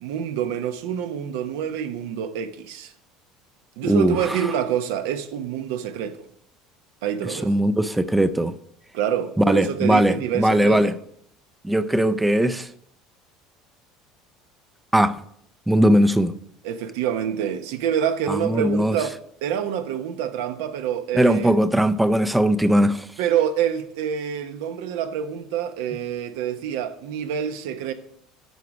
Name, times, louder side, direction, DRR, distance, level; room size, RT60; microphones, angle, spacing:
voice 1, 0.0-2.9 3.8-6.2 7.0-7.5 8.9-11.0 16.6-19.2 19.4-21.6 23.2-27.9, right 9 dB, 85° right, 0.8 m, -27 dB
voice 2, 3.8-4.5 7.3-8.5 9.4-10.9 11.6-12.7 14.9-15.2 15.7-16.4 18.3-19.0 21.1-23.1, right 1 dB, 5° right, 0.4 m, -19 dB
9.3 x 4.9 x 5.9 m
cardioid pair, 135°, 0 cm